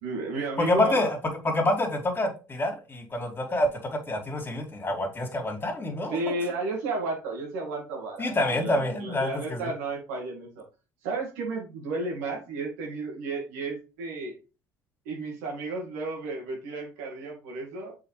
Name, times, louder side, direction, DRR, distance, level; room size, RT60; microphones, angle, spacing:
voice 1, 0.0-1.1 6.1-10.6 11.0-14.4 15.1-18.0, right 3 dB, 80° right, 0 dB, 2.2 m, -33 dB
voice 2, 0.6-1.2 1.4-6.4 8.2-9.7, left 1 dB, 25° left, 2 dB, 2.7 m, -27 dB
6.9 x 4.9 x 3.3 m, 0.33 s
hypercardioid pair, 70°, 8 cm